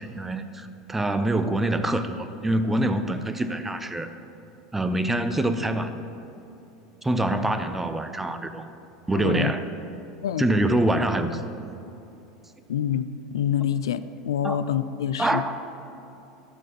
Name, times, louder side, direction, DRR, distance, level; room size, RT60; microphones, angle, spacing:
voice 1, 0.0-4.1 4.7-5.9 7.0-8.7 9.1-9.6 10.4-11.4 14.4-14.6 15.2-15.5, right 1 dB, 10° right, 9 dB, 0.6 m, -25 dB
voice 2, 9.1-9.5 10.2-10.5 12.7-15.4, left 9 dB, 75° left, 12 dB, 0.3 m, -26 dB
13.5 x 4.9 x 5.9 m, 2.9 s
figure-of-eight pair, 80°, 2 cm